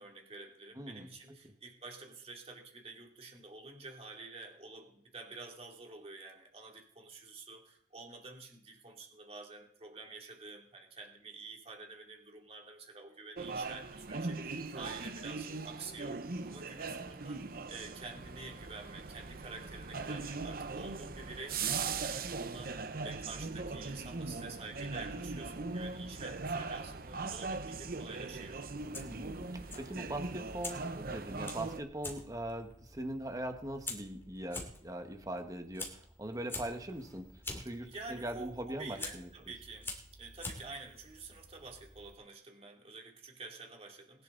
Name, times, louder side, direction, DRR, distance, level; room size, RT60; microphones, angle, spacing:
voice 1, 0.0-16.2 16.4-28.6 37.8-39.9 40.2-44.2, right 3 dB, 35° right, 1 dB, 2.9 m, -49 dB
voice 2, 0.8-1.1 29.0-37.3 37.6-39.3, right 1 dB, 20° right, 6 dB, 1.5 m, -41 dB
sound 1, 13.4-31.8, right 4 dB, 55° right, 0.9 m, -40 dB
Fire, 28.7-42.1, left 2 dB, 15° left, 2.7 m, -47 dB
21.0 x 10.5 x 4.0 m, 0.64 s
head